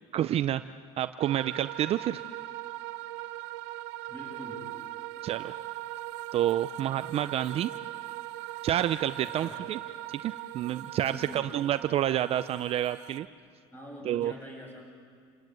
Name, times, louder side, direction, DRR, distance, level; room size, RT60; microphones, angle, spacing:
voice 1, 0.1-0.6 1.0-2.2 5.2-5.5 6.3-7.7 8.6-9.8 10.1-13.3 14.1-14.3, right 11 dB, 45° right, 12 dB, 0.6 m, -29 dB
sound 1, 1.2-13.3, right 17 dB, 85° right, 0.8 m, -40 dB
voice 2, 4.1-4.7 9.2-9.6 11.1-11.6 13.7-14.8, equal, 15° left, -1 dB, 7.6 m, -44 dB
28.5 x 17.5 x 9.4 m, 2.1 s
cardioid pair, 125°, 15 cm